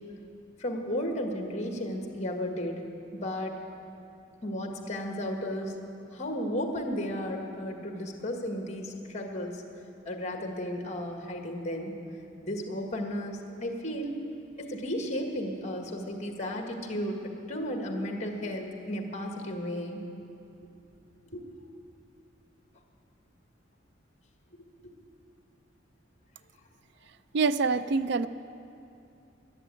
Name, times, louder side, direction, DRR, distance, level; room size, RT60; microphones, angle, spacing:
voice 1, 0.6-2.8 3.1-3.5 4.4-5.8 6.1-9.6 10.0-11.9 12.4-14.1 14.6-17.2 17.5-20.0 21.3-21.4 24.8-24.9, equal, 35° left, 2 dB, 1.6 m, -34 dB
voice 2, 27.3-28.3, right 4 dB, 60° right, 14 dB, 0.4 m, -25 dB
12.5 x 10.5 x 9.1 m, 2.7 s
head